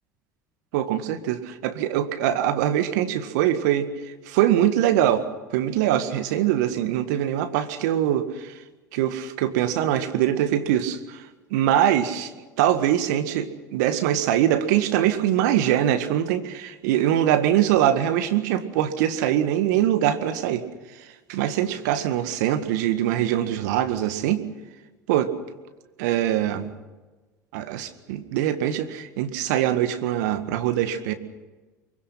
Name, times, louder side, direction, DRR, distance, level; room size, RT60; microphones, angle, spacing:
voice 1, 0.7-3.9 4.3-5.3 5.5-8.6 8.9-12.3 12.6-20.6 21.0-24.4 25.1-25.3 26.0-26.7 27.5-31.1, right 11 dB, 70° right, 10 dB, 1.8 m, -23 dB
24.0 x 23.0 x 5.9 m, 1.2 s
hypercardioid pair, 70°, 10 cm